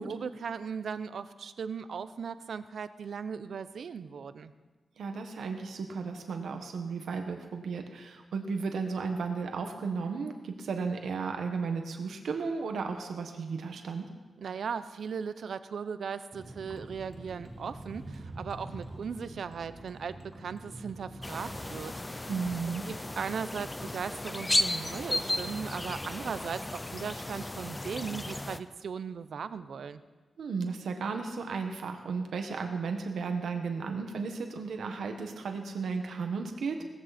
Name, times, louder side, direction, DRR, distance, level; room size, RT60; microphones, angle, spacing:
voice 1, 0.1-4.5 14.4-22.3 22.9-30.0, right 6 dB, 65° right, 13 dB, 0.6 m, -38 dB
voice 2, 5.0-14.1 22.3-22.8 30.4-36.8, right 5 dB, 85° right, 4 dB, 1.5 m, -34 dB
Vehicle, 16.3-21.8, right 1 dB, 15° right, 1.6 m, -45 dB
sound 1, 21.2-28.6, left 1 dB, 15° left, 0.5 m, -34 dB
18.5 x 15.0 x 4.3 m, 1.3 s
wide cardioid pair, 180°, 0 cm